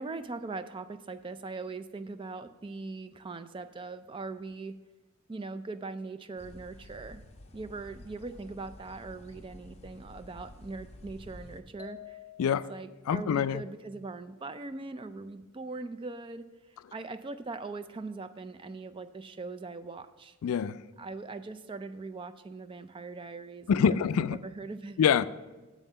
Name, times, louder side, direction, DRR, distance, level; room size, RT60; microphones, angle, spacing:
voice 1, 0.0-4.7 5.3-7.2 7.5-12.2 12.7-20.4 21.0-25.0, right 3 dB, 25° right, 0.3 m, -41 dB
sound 1, 6.4-11.6, left 1 dB, 30° left, 0.7 m, -50 dB
sound 2, 11.8-13.0, left 11 dB, 5° right, 0.8 m, -48 dB
voice 2, 13.1-13.6 20.4-20.8 23.7-24.4 25.0-25.2, left 7 dB, 75° left, 0.3 m, -25 dB
7.2 x 5.5 x 6.7 m
head